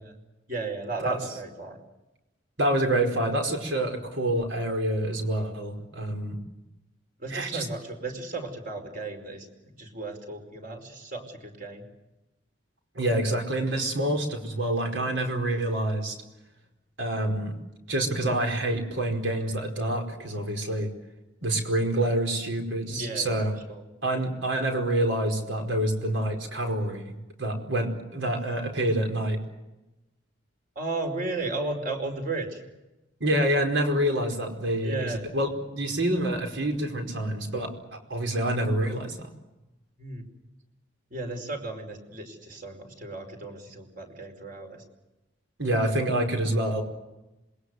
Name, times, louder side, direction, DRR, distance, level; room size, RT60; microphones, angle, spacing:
voice 1, 0.5-1.8 7.2-9.5 9.8-11.8 22.9-23.8 30.7-32.6 34.8-35.2 40.0-40.2 41.1-44.8, right 2 dB, 45° right, 4 dB, 5.0 m, -34 dB
voice 2, 2.6-6.4 7.3-7.7 12.9-16.2 17.0-17.6 17.9-20.9 21.4-23.5 24.0-27.1 27.4-29.4 33.2-37.7 38.1-39.3 45.6-46.8, right 1 dB, 75° right, 3 dB, 4.9 m, -27 dB
27.0 x 21.5 x 8.0 m, 1.0 s
head